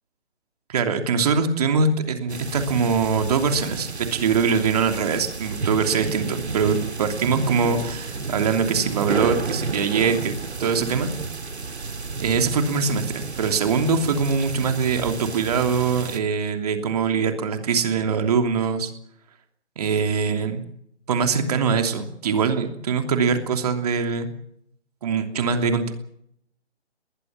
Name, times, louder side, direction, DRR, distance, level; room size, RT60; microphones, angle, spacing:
voice 1, 0.7-10.3 10.6-11.1 12.2-18.9 19.8-20.6 21.1-24.3 25.0-25.9, right 5 dB, 35° right, 6 dB, 3.0 m, -23 dB
sound 1, 2.3-16.2, right 4 dB, 70° right, 3.4 m, -32 dB
21.0 x 20.5 x 7.5 m, 0.73 s
figure-of-eight pair, 155°, 34 cm